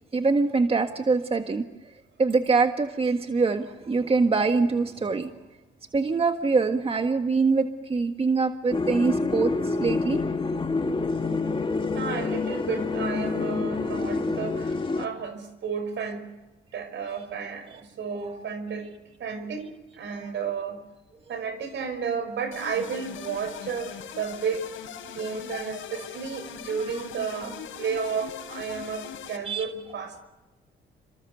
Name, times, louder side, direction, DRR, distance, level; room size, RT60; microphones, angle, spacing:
voice 1, 0.1-1.7 2.2-5.3 5.9-10.2 20.1-20.3 29.4-29.7, right 4 dB, 30° right, 6 dB, 1.6 m, -24 dB
sound 1, 8.7-15.1, left 3 dB, 25° left, 1.9 m, -27 dB
voice 2, 12.0-16.3 16.7-18.9 19.2-19.7 19.9-20.8 21.3-24.7 25.1-30.2, right 6 dB, 70° right, 10 dB, 5.3 m, -32 dB
sound 2, 22.5-29.4, left 8 dB, 85° left, 4.7 m, -40 dB
29.0 x 25.5 x 6.7 m, 1.1 s
cardioid pair, 90°, 20 cm